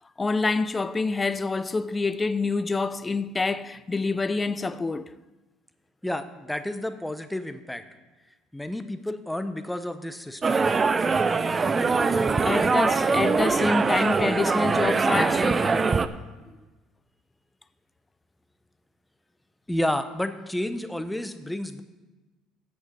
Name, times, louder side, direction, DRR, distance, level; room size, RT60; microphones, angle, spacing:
voice 1, 0.2-5.2 11.9-16.0 16.5-16.6, left 3 dB, 20° left, 0.5 m, -27 dB
voice 2, 6.0-7.8 8.5-10.6 19.7-21.8, left 1 dB, 5° left, 0.8 m, -31 dB
sound 1, 10.4-16.1, right 4 dB, 30° right, 0.5 m, -23 dB
8.2 x 6.6 x 7.5 m
supercardioid pair, 80°, 0 cm